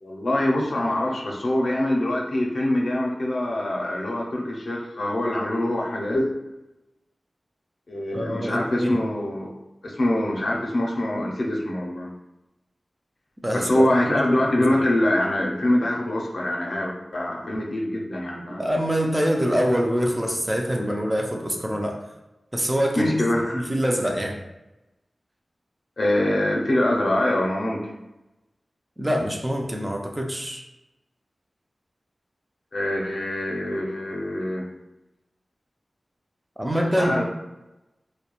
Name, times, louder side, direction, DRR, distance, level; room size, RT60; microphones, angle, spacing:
voice 1, 0.0-6.3 7.9-9.5 9.8-12.1 13.5-18.6 23.0-23.6 26.0-27.8 32.7-34.6 37.0-37.2, left 1 dB, 75° left, -2 dB, 0.5 m, -24 dB
voice 2, 8.1-9.0 13.4-14.2 14.6-14.7 18.6-22.0 22.5-23.2 23.5-24.4 29.0-30.6 36.6-37.2, equal, 15° right, 1 dB, 0.4 m, -25 dB
2.2 x 2.1 x 2.9 m, 0.98 s
wide cardioid pair, 75°, 0 cm